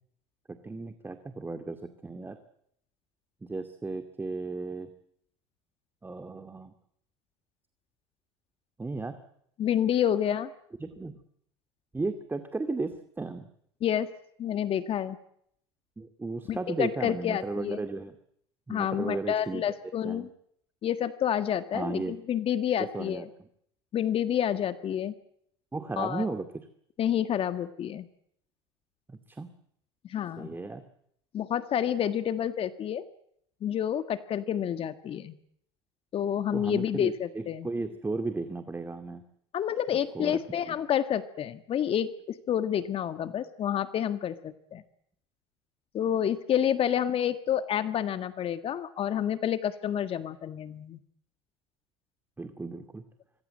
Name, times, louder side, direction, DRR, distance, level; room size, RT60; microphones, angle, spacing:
voice 1, 0.6-2.4 3.4-4.9 6.0-6.7 8.8-9.2 10.8-11.2 11.9-13.4 16.0-18.1 18.7-19.6 20.0-20.3 21.7-22.1 22.9-23.3 25.7-26.5 29.1-29.5 30.4-30.8 36.5-39.2 40.1-40.4 40.7-40.8 52.4-53.0, right 3 dB, 15° right, 8 dB, 2.4 m, -35 dB
voice 2, 9.6-10.5 13.8-14.1 14.4-15.2 16.5-17.8 18.7-20.3 20.8-23.3 23.9-25.1 26.0-26.3 27.0-28.1 30.1-30.6 31.3-33.0 33.6-35.4 36.1-37.7 39.5-44.8 45.9-51.0, left 9 dB, 45° left, 10 dB, 1.6 m, -29 dB
26.0 x 21.0 x 7.8 m, 0.71 s
hypercardioid pair, 75°, 14 cm